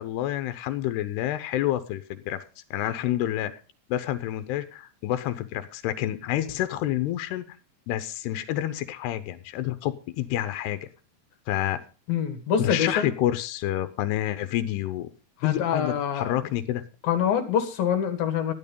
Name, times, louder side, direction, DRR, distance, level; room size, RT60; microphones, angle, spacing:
voice 1, 0.0-2.4 2.7-3.5 3.9-7.4 7.9-10.8 11.5-11.8 12.6-15.1 15.4-16.8, left 13 dB, 90° left, 3.0 m, -28 dB
voice 2, 12.1-13.1 15.4-16.3 17.0-18.5, left 8 dB, 65° left, 3.3 m, -25 dB
13.5 x 11.0 x 5.3 m
omnidirectional pair, 4.6 m